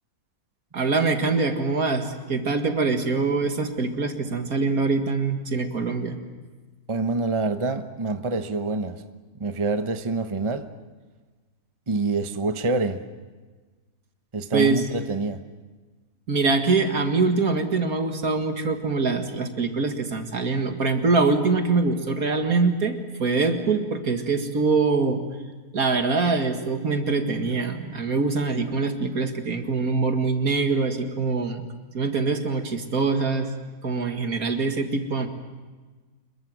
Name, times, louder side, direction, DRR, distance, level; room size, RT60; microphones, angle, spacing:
voice 1, 0.7-6.2 14.5-14.8 16.3-25.2 25.7-31.6 31.9-33.5 33.8-35.3, right 4 dB, 70° right, 5 dB, 2.4 m, -24 dB
voice 2, 6.9-9.0 9.4-10.6 11.9-13.0 14.3-15.4, right 3 dB, 25° right, 8 dB, 1.0 m, -26 dB
27.0 x 23.0 x 7.6 m, 1.3 s
omnidirectional pair, 1.6 m